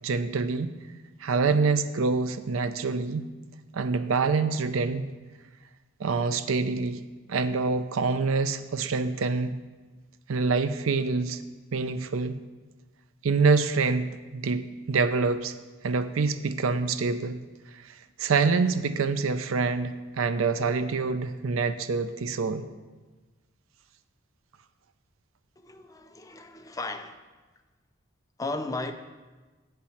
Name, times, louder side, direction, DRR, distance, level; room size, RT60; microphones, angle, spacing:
voice 1, 0.0-0.7 1.2-3.3 3.7-5.1 6.0-7.0 7.3-9.6 10.3-11.4 11.7-12.4 13.2-15.5 15.8-17.4 17.7-22.7, right 4 dB, 85° right, 0.5 m, -26 dB
voice 2, 25.6-27.2 28.4-28.9, left 2 dB, 15° left, 0.4 m, -35 dB
7.7 x 5.8 x 6.4 m
head